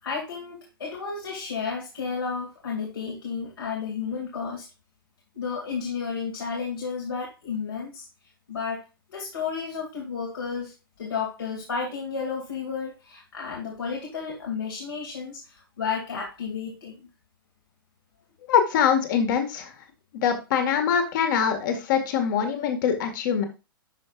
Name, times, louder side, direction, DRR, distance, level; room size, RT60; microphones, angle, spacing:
voice 1, 0.0-4.7 5.3-8.0 8.5-8.8 9.1-17.1, left 5 dB, 80° left, -2 dB, 2.7 m, -32 dB
voice 2, 18.5-19.7 20.1-23.5, left 7 dB, 55° left, 5 dB, 1.8 m, -23 dB
12.0 x 5.6 x 2.5 m, 0.28 s
hypercardioid pair, 105°, 12 cm